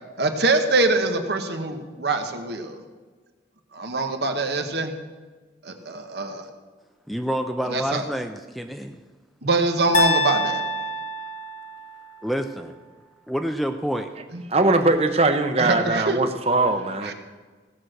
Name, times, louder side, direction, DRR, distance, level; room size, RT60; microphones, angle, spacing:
voice 1, 0.2-2.8 3.7-4.9 5.6-6.5 7.7-8.0 9.4-10.6 14.3-14.4 15.6-16.2 17.0-17.1, right 2 dB, 65° right, 5 dB, 1.1 m, -24 dB
voice 2, 7.1-9.0 12.2-12.7 13.3-14.1, equal, ahead, 6 dB, 0.4 m, -28 dB
sound 1, 9.9-12.1, equal, 45° left, 0.9 m, -26 dB
voice 3, 14.5-17.1, right 2 dB, 35° right, 7 dB, 0.8 m, -21 dB
16.5 x 6.3 x 6.4 m, 1.4 s
head